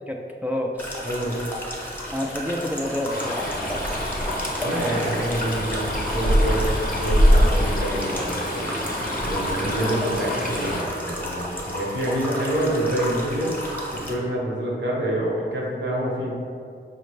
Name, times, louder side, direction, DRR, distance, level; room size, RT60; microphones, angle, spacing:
voice 1, 0.1-0.7 2.1-3.5, left 1 dB, 10° right, 0 dB, 0.3 m, -28 dB
sound 1, 0.8-14.1, equal, 10° left, 0.8 m, -32 dB
voice 2, 1.0-1.4 4.6-5.9 6.1-8.8 9.2-13.5 13.9-16.3, right 1 dB, 70° right, -4 dB, 0.9 m, -27 dB
Stream, 3.1-10.8, equal, 45° left, 0.6 m, -24 dB
4.8 x 2.1 x 3.2 m, 2.4 s
wide cardioid pair, 45°, 20 cm